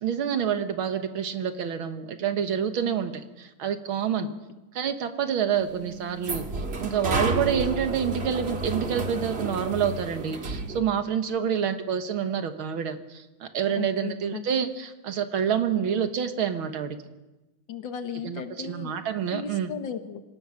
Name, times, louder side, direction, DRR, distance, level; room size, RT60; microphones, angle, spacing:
voice 1, 0.0-4.3 4.8-17.0 18.2-19.7, right 8 dB, 75° right, 8 dB, 2.2 m, -28 dB
sound 1, 5.6-10.8, right 2 dB, 30° right, 1.8 m, -31 dB
voice 2, 13.8-14.5 17.7-18.9 19.3-20.2, left 7 dB, 65° left, 8 dB, 1.9 m, -36 dB
26.0 x 17.0 x 6.4 m, 1.1 s
omnidirectional pair, 2.3 m